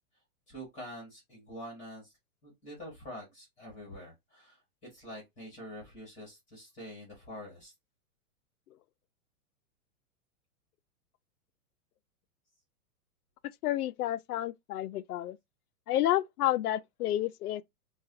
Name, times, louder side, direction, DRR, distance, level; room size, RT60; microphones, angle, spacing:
voice 1, 0.5-2.1 2.4-4.6 4.9-7.7, equal, 15° left, 1.9 m, -46 dB
voice 2, 13.6-15.4 15.9-17.6, left 13 dB, 70° left, 0.5 m, -30 dB
5.0 x 2.4 x 2.6 m
supercardioid pair, 170°, 47 cm